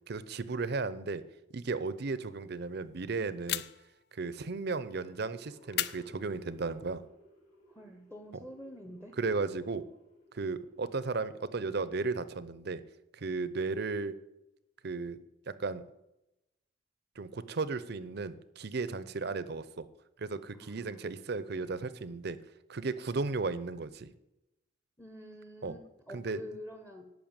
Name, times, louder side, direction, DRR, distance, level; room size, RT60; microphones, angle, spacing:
voice 1, 0.1-1.2 1.5-3.6 4.1-7.0 8.3-8.4 9.2-9.8 10.3-12.8 13.1-14.2 14.8-15.2 15.5-15.8 17.2-19.9 20.2-22.4 22.7-24.1 25.6-25.7 26.1-26.4, right 4 dB, 60° right, 15 dB, 0.7 m, -35 dB
sound 1, 3.5-4.0 5.7-6.7, left 12 dB, 65° left, 0.5 m, -36 dB
sound 2, 4.5-11.7, equal, 45° left, 3.9 m, -59 dB
voice 2, 7.7-9.2 20.6-21.0 25.0-27.1, equal, 10° left, 5 dB, 1.0 m, -47 dB
11.0 x 5.7 x 8.8 m, 0.91 s
head